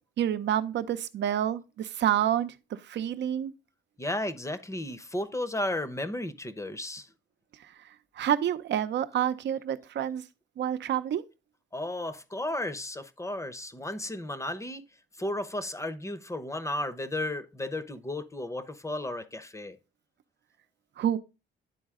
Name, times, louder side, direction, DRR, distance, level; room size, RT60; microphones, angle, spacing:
voice 1, 0.2-2.5 2.9-3.5 8.2-10.2 10.6-11.2 21.0-21.2, right 10 dB, 65° right, 0.7 m, -28 dB
voice 2, 4.0-7.1 11.7-14.8 15.2-19.8, left 1 dB, 15° left, 0.8 m, -34 dB
10.0 x 4.0 x 3.6 m
cardioid pair, 90°, 20 cm